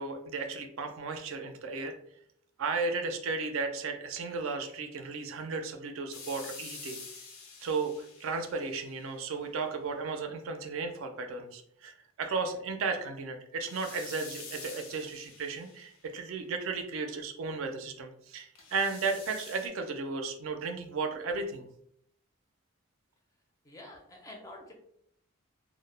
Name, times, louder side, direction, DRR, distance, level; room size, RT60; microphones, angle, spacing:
voice 1, 0.0-2.0 2.6-7.0 7.6-21.7, right 4 dB, 70° right, 5 dB, 0.4 m, -34 dB
sound 1, 6.1-9.2 13.6-16.2 18.5-19.7, left 4 dB, 85° left, 0.5 m, -47 dB
voice 2, 23.6-24.7, left 1 dB, 15° left, 0 dB, 0.4 m, -48 dB
2.1 x 2.0 x 3.1 m, 0.71 s
head